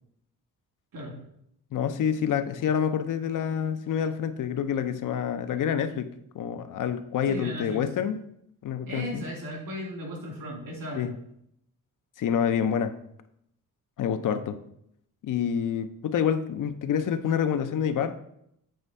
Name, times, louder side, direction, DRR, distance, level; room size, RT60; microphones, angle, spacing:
voice 1, 1.7-8.2 8.6-9.2 10.9-11.1 12.2-12.9 14.0-14.6 15.2-18.2, left 8 dB, 65° left, 10 dB, 0.6 m, -27 dB
voice 2, 7.3-7.8 8.9-11.1, equal, 80° right, -1 dB, 2.5 m, -36 dB
7.8 x 3.3 x 5.4 m, 0.74 s
wide cardioid pair, 145°, 34 cm